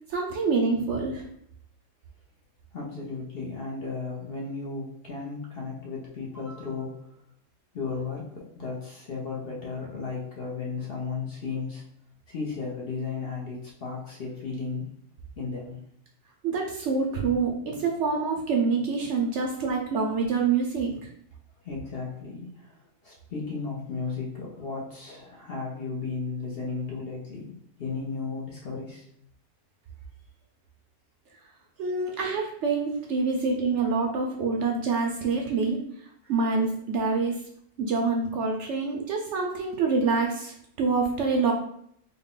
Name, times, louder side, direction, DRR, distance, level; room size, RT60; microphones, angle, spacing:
voice 1, 0.1-1.2 16.4-21.1 31.8-35.8 36.3-37.3 37.8-41.5, right 4 dB, 65° right, 1 dB, 0.8 m, -26 dB
voice 2, 2.7-7.1 7.7-11.8 12.3-14.8 15.4-15.8 21.6-27.4 27.8-29.0, left 4 dB, 50° left, -3 dB, 0.8 m, -34 dB
3.9 x 2.2 x 3.7 m, 0.69 s
omnidirectional pair, 1.5 m